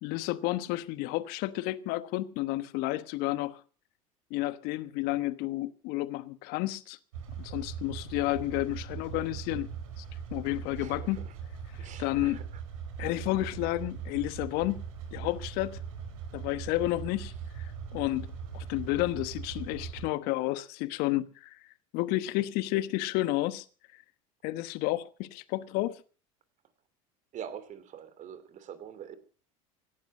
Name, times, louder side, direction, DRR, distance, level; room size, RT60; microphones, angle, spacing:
voice 1, 0.0-3.6 4.3-7.0 7.4-9.7 10.0-10.1 10.3-11.3 11.8-12.4 13.0-14.8 15.1-15.8 16.3-18.3 18.5-21.6 21.9-23.6 24.4-26.0, left 17 dB, 60° left, 1.1 m, -31 dB
sound 1, 7.1-20.1, right 7 dB, 80° right, 5.2 m, -40 dB
voice 2, 10.8-11.3 11.8-12.6 13.0-13.2 27.3-29.2, right 8 dB, 45° right, 3.0 m, -45 dB
17.5 x 11.5 x 6.3 m
hypercardioid pair, 80°, 18 cm